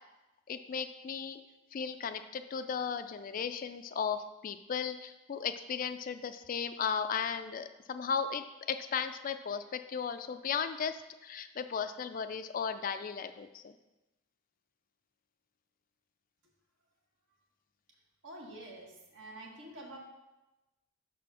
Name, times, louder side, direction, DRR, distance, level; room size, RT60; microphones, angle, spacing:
voice 1, 0.5-1.4 1.7-13.7, left 6 dB, 45° left, 10 dB, 0.4 m, -36 dB
voice 2, 18.2-20.0, right 1 dB, 70° right, -2 dB, 1.6 m, -47 dB
5.5 x 4.2 x 6.1 m, 1.0 s
head